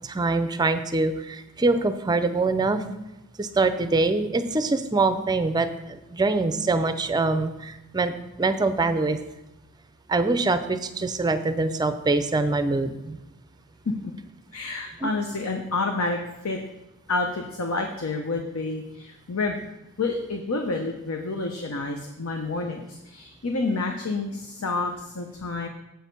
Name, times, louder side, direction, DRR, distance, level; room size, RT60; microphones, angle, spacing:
voice 1, 0.0-2.8 3.4-9.2 10.1-13.2 15.0-15.1, right 3 dB, 20° right, 10 dB, 0.5 m, -24 dB
voice 2, 14.5-16.6 17.1-19.6 20.0-25.7, left 3 dB, 65° left, 3 dB, 0.8 m, -29 dB
7.9 x 6.4 x 5.3 m, 0.95 s
head